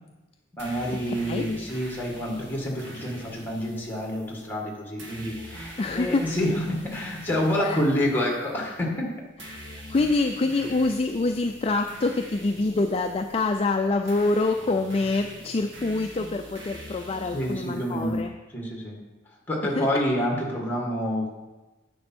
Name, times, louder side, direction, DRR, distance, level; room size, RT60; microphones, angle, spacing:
voice 1, 0.5-9.1 17.3-18.3 18.5-19.0 19.5-21.3, equal, 10° left, -1 dB, 1.8 m, -28 dB
sound 1, 0.6-18.2, right 1 dB, 65° right, 1.7 m, -45 dB
voice 2, 1.1-1.5 5.8-6.3 7.6-7.8 9.5-18.3 19.8-19.9, left 3 dB, 30° left, 5 dB, 0.4 m, -26 dB
9.8 x 6.0 x 4.4 m, 1.1 s
head